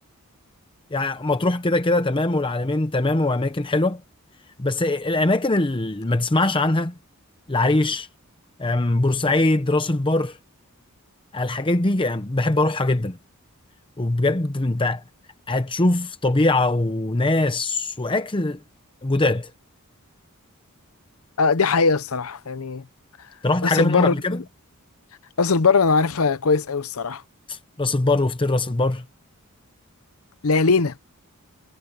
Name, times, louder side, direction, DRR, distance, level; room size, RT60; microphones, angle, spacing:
voice 1, 0.9-4.0 4.6-7.0 7.5-8.1 8.6-10.4 11.3-13.2 14.0-15.0 15.5-18.6 19.0-19.5 23.4-24.4 27.5-29.0, left 2 dB, 25° left, 0.8 m, -22 dB
voice 2, 21.4-22.8 23.6-24.1 25.4-27.2 30.4-30.9, left 4 dB, 70° left, 0.8 m, -20 dB
head